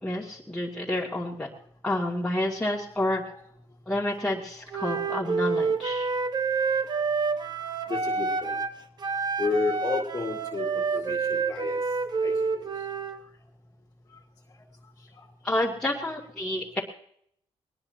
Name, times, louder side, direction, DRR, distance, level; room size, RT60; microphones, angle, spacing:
voice 1, 0.0-1.5 1.8-3.2 3.9-6.1 15.4-16.8, left 1 dB, 5° left, -6 dB, 2.5 m, -29 dB
Wind instrument woodwind instrument, 4.7-8.8 9.0-13.2, right 4 dB, 40° right, 1.3 m, -28 dB
voice 2, 7.9-8.6 9.4-11.8 12.2-12.7 15.0-15.3 16.4-16.5, left 4 dB, 30° left, 0 dB, 2.3 m, -32 dB
21.0 x 19.5 x 2.9 m, 0.66 s
cardioid pair, 125°, 11 cm